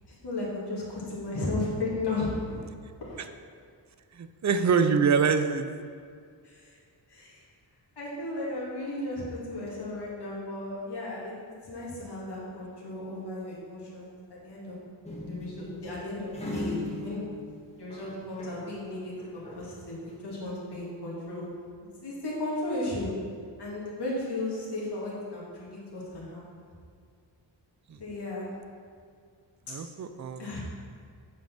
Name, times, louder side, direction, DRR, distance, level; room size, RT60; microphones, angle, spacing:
voice 1, 0.1-2.6 3.0-3.2 6.4-6.8 7.1-7.5 8.0-11.3 11.6-14.8 15.2-17.3 17.8-21.5 22.0-23.1 23.6-26.6 28.0-28.5 30.4-30.6, left 2 dB, 60° left, -6 dB, 2.4 m, -35 dB
voice 2, 4.1-5.6 27.9-28.0 29.7-30.6, right 5 dB, 40° right, 9 dB, 0.5 m, -25 dB
sound 1, 15.0-18.8 19.1-20.2, left 2 dB, 15° left, 1.7 m, -39 dB
8.0 x 5.2 x 5.9 m, 2.2 s
wide cardioid pair, 100°, 44 cm